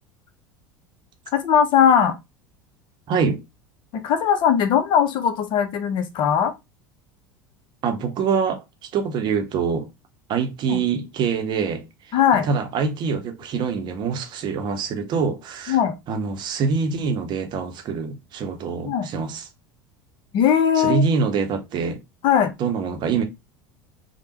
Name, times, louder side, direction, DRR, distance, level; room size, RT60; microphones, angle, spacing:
voice 1, 1.3-2.2 3.9-6.5 10.7-10.8 12.1-12.5 15.7-15.9 18.8-19.1 20.3-21.0 22.2-22.5, left 8 dB, 45° left, 0.6 m, -19 dB
voice 2, 3.1-3.4 7.8-8.6 8.9-9.9 10.3-11.8 12.4-15.8 16.1-19.5 20.8-22.0 22.6-23.2, right 5 dB, 45° right, 0.7 m, -24 dB
3.2 x 2.2 x 2.9 m
figure-of-eight pair, 75°, 11 cm